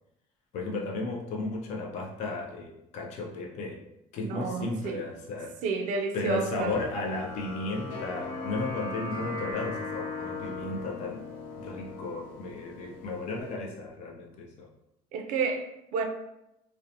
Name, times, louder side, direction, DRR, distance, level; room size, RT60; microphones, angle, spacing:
voice 1, 0.5-3.8 4.1-5.5 6.1-11.3 11.6-14.7, left 2 dB, 50° left, 0 dB, 0.4 m, -34 dB
voice 2, 4.2-5.0 5.6-6.7 15.1-16.0, right 4 dB, 60° right, 4 dB, 0.4 m, -30 dB
sound 1, 6.7-13.5, left 3 dB, 65° left, 1.2 m, -38 dB
2.5 x 2.1 x 2.7 m, 0.85 s
cardioid pair, 165°, 15 cm